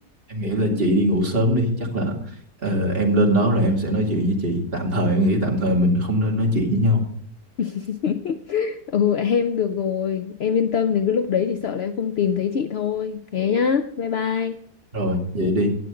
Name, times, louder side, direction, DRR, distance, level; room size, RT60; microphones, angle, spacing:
voice 1, 0.3-2.1 2.6-7.0 14.9-15.7, equal, 35° right, 0 dB, 2.5 m, -21 dB
voice 2, 7.6-14.6, left 7 dB, 65° left, 8 dB, 0.6 m, -23 dB
18.0 x 7.8 x 3.8 m, 0.62 s
omnidirectional pair, 1.7 m